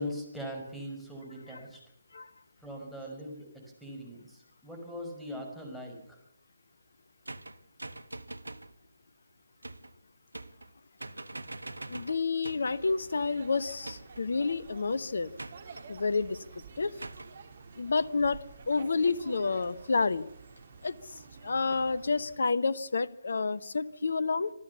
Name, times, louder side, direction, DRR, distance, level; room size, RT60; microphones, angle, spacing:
voice 1, 0.0-1.8 2.6-6.0, equal, ahead, 1 dB, 5.9 m, -40 dB
sound 1, 7.3-8.7 9.6-10.0 10.3-10.7 11.0-12.8 13.8-14.3 15.4-15.9 17.0-17.4, right 2 dB, 80° right, 1.2 m, -43 dB
voice 2, 11.9-15.3 15.9-16.4 16.8-16.9 17.8-18.4 18.7-20.3 20.8-21.0 21.4-24.5, left 4 dB, 65° left, 16 dB, 1.2 m, -29 dB
sound 2, 12.5-22.4, right 5 dB, 55° right, 2.8 m, -50 dB
26.5 x 14.5 x 7.1 m, 0.77 s
figure-of-eight pair, 145°, 0 cm